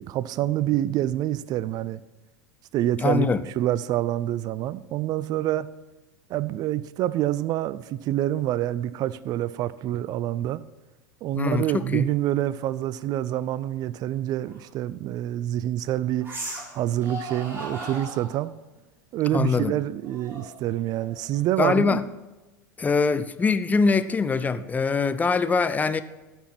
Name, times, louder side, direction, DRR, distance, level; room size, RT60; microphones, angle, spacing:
voice 1, 0.0-2.0 2.7-5.7 6.3-10.6 11.2-16.3 16.7-18.5 19.1-22.0, right 13 dB, 40° right, 0.5 m, -27 dB
voice 2, 3.0-3.4 11.3-12.1 19.3-19.7 21.6-22.1 22.8-26.0, left 4 dB, 15° left, 0.6 m, -23 dB
sound 1, 14.5-14.6 16.2-16.7 17.0-18.4 20.0-21.6, right 1 dB, 20° right, 3.8 m, -37 dB
13.5 x 6.1 x 5.9 m
figure-of-eight pair, 85°, 10 cm